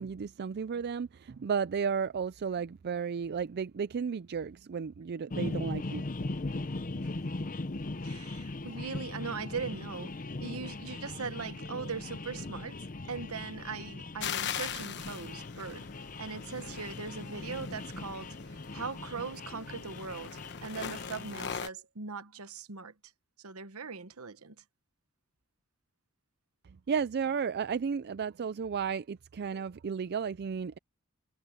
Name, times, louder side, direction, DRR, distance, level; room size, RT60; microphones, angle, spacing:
voice 1, 0.0-6.0 26.9-30.8, right 6 dB, 45° right, 0.4 m, -33 dB
sound 1, 5.3-21.4, left 2 dB, 40° left, 0.8 m, -39 dB
voice 2, 8.0-15.9 16.2-22.9 23.4-24.6, right 5 dB, 70° right, 1.1 m, -40 dB
sound 2, 14.2-21.7, left 8 dB, 55° left, 1.1 m, -41 dB
head